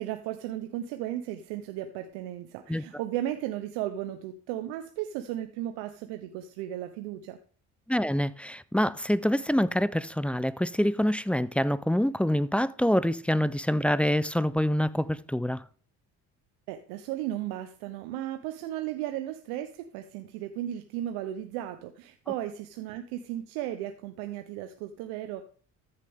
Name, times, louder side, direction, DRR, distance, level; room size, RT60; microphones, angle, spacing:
voice 1, 0.0-7.4 16.7-25.4, right 12 dB, 85° right, 0.8 m, -35 dB
voice 2, 7.9-15.6, equal, 5° left, 0.4 m, -26 dB
14.0 x 6.7 x 3.5 m
supercardioid pair, 65°, 40 cm